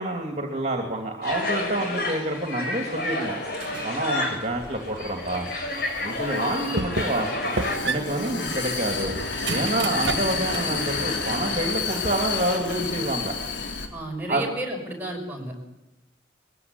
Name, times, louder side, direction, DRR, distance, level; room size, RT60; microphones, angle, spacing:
voice 1, 0.0-3.3 3.8-5.5 6.0-7.3 7.8-9.2 9.5-13.3 14.3-14.4, right 1 dB, 35° right, 3 dB, 2.8 m, -28 dB
sound 1, 1.2-7.8, left 2 dB, 55° left, 6.6 m, -30 dB
sound 2, 3.6-4.0 4.5-5.5 6.1-6.2 6.8-7.3 7.6-10.8 11.2-12.1, right 3 dB, 75° right, 1.3 m, -32 dB
Vehicle, 4.5-13.9, left 4 dB, 75° left, 3.4 m, -31 dB
voice 2, 13.9-15.6, right 2 dB, 10° right, 0 dB, 5.9 m, -33 dB
21.5 x 16.5 x 9.7 m, 0.93 s
head